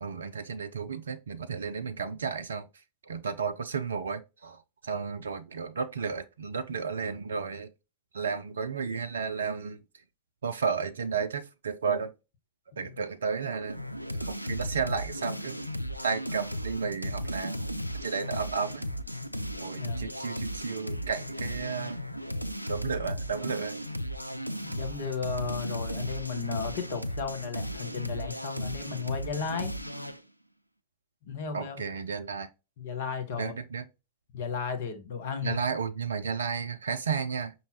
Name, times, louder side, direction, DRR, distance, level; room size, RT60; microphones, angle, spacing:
voice 1, 0.0-2.6 3.1-7.7 8.1-9.8 10.4-12.1 12.8-13.8 14.2-15.6 16.0-17.6 18.0-18.9 19.6-22.0 22.7-23.8 31.5-32.5 33.4-33.8 35.4-37.5, right 5 dB, 70° right, 0.4 m, -33 dB
sound 1, 13.7-30.2, equal, 90° left, 0.3 m, -35 dB
voice 2, 19.7-20.1 24.6-29.7 31.2-31.8 32.8-33.5 34.3-35.6, left 6 dB, 55° left, 1.0 m, -34 dB
5.4 x 2.8 x 2.8 m
figure-of-eight pair, 90°, 0 cm